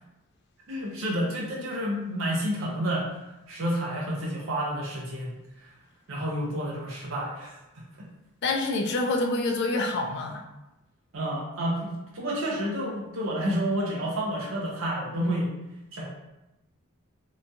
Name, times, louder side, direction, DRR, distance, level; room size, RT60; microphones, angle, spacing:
voice 1, 0.7-3.1 3.5-5.3 5.6-5.7 6.1-7.5 11.1-15.5 15.9-16.1, equal, 60° right, -4 dB, 0.6 m, -29 dB
voice 2, 8.4-10.4, left 2 dB, 50° left, 2 dB, 0.4 m, -27 dB
2.8 x 2.2 x 2.6 m, 0.96 s
head